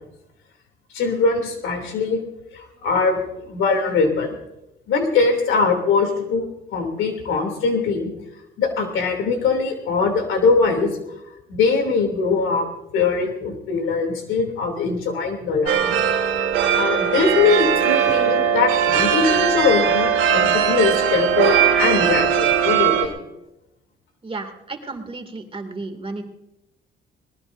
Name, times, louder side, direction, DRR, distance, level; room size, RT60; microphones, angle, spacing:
voice 1, 0.9-2.2 2.5-4.4 4.9-8.1 8.6-10.9 11.5-12.7 12.9-16.0 16.4-23.1, left 4 dB, 90° left, 4 dB, 3.0 m, -21 dB
sound 1, 15.7-23.1, right 8 dB, 90° right, 2.0 m, -19 dB
voice 2, 24.2-26.2, right 3 dB, 30° right, 5 dB, 2.6 m, -33 dB
22.5 x 19.5 x 2.7 m, 0.90 s
cardioid pair, 90°, 20 cm